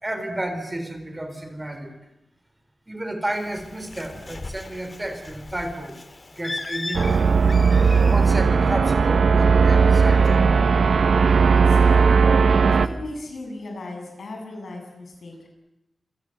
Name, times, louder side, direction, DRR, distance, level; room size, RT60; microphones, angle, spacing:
voice 1, 0.0-1.9 2.9-6.0 6.3-7.5 8.0-10.7, right 1 dB, 20° right, 8 dB, 4.0 m, -31 dB
Bird, 3.3-8.3, left 2 dB, 40° left, 2.2 m, -37 dB
sound 1, 6.9-12.9, right 5 dB, 90° right, 1.1 m, -17 dB
voice 2, 11.5-12.2 12.7-15.5, left 2 dB, 85° left, 3 dB, 7.9 m, -37 dB
28.0 x 26.0 x 7.9 m, 0.91 s
wide cardioid pair, 100°, 0 cm